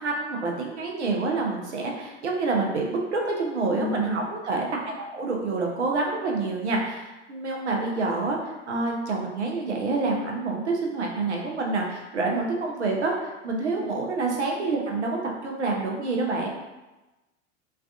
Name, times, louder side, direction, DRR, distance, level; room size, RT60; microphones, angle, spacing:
voice 1, 0.0-16.5, right 3 dB, 75° right, 0 dB, 0.6 m, -27 dB
voice 2, 3.8-4.2 13.8-13.9 16.3-16.5, left 6 dB, 20° left, -3 dB, 0.4 m, -32 dB
3.3 x 2.3 x 2.4 m, 1.1 s
figure-of-eight pair, 85°, 35 cm